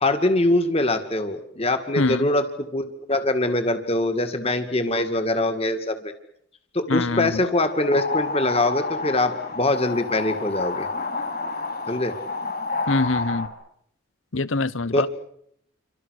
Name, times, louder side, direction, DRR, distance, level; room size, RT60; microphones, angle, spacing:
voice 1, 0.0-6.0 6.7-10.9 11.9-12.1 14.9-15.1, left 2 dB, 30° left, 2.1 m, -23 dB
voice 2, 2.0-2.3 6.9-7.4 12.9-13.5 14.3-15.1, left 3 dB, 70° left, 1.1 m, -24 dB
sound 1, 7.5-13.5, left 3 dB, 45° left, 4.7 m, -29 dB
29.0 x 25.5 x 6.5 m
head